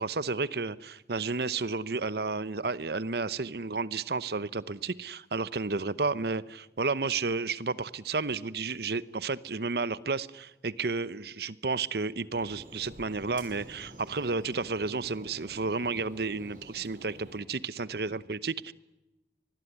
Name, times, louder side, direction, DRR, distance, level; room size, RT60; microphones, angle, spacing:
voice 1, 0.0-18.7, right 4 dB, 65° right, 17 dB, 0.9 m, -32 dB
sound 1, 12.3-17.4, right 1 dB, 50° right, 5.8 m, -50 dB
25.5 x 20.5 x 9.9 m, 0.99 s
head